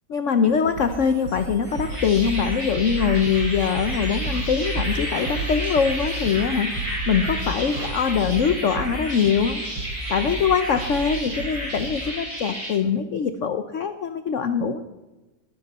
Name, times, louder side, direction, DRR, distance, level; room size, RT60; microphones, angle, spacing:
voice 1, 0.1-9.6 10.1-14.8, left 6 dB, 70° left, 9 dB, 0.7 m, -23 dB
sound 1, 0.6-12.1, right 2 dB, 60° right, 3.9 m, -32 dB
sound 2, 1.6-12.7, equal, 30° right, 6.3 m, -32 dB
20.0 x 13.0 x 4.2 m, 1.1 s
omnidirectional pair, 2.3 m